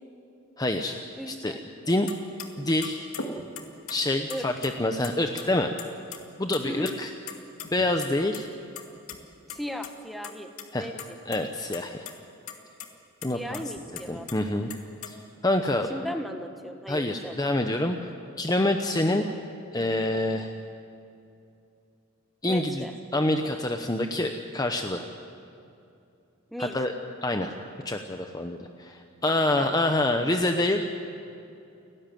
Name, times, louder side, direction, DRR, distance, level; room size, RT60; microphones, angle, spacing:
voice 1, 0.6-1.0 1.3-1.5 1.9-2.1 2.6-3.1 3.9-5.7 6.4-7.1 7.7-8.5 10.7-10.9 11.3-12.0 13.2-13.6 14.1-14.7 15.1-15.2 15.4-15.9 16.9-18.0 18.4-19.2 19.7-20.5 22.4-22.9 23.1-25.1 26.6-26.9 27.2-27.5 27.8-30.9, left 1 dB, 20° left, 5 dB, 0.8 m, -26 dB
voice 2, 1.2-1.6 4.3-4.5 6.6-7.0 9.5-11.2 13.3-14.3 15.9-17.4 19.2-19.4 22.5-22.9 26.5-26.8 29.6-29.9, equal, ahead, 5 dB, 1.3 m, -37 dB
sound 1, 2.1-2.2 2.4-2.5 2.8-4.0 4.3-5.1 5.4-5.5 5.8-6.2 6.5-6.9 7.3-8.4 8.8-9.2 9.5-9.6 9.8-9.9 10.2-10.6 11.0-11.4 11.7-12.1 12.5-12.6 12.8-12.9 13.2-14.3 14.7-15.1, left 6 dB, 85° left, 2.2 m, -38 dB
30.0 x 12.5 x 9.2 m, 2.6 s
head